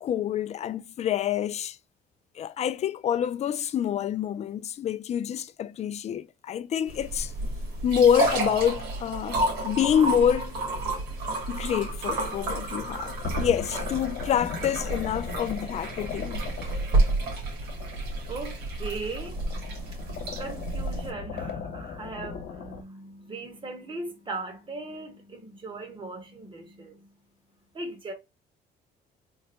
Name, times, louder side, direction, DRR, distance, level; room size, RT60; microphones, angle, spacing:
voice 1, 0.0-1.8 2.4-7.3 7.8-10.6 11.5-16.5, left 9 dB, 40° left, 0.4 m, -27 dB
sound 1, 6.9-21.1, right 2 dB, 75° right, 1.8 m, -30 dB
sound 2, 12.7-18.9 19.2-22.8, left 5 dB, 80° left, 0.9 m, -38 dB
voice 2, 18.3-19.4 19.9-27.2 27.7-28.1, right 3 dB, 30° right, 1.3 m, -39 dB
3.9 x 2.2 x 4.1 m
cardioid pair, 110°, 17 cm